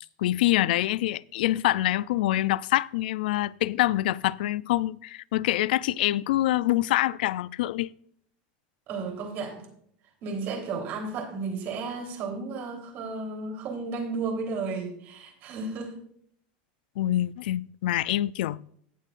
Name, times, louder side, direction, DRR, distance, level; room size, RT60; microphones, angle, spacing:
voice 1, 0.2-7.9 17.0-18.6, left 15 dB, 80° left, 0.3 m, -25 dB
voice 2, 8.9-9.7 10.2-16.0, right 4 dB, 45° right, 3.5 m, -33 dB
17.5 x 7.5 x 2.5 m
supercardioid pair, 145°, 5 cm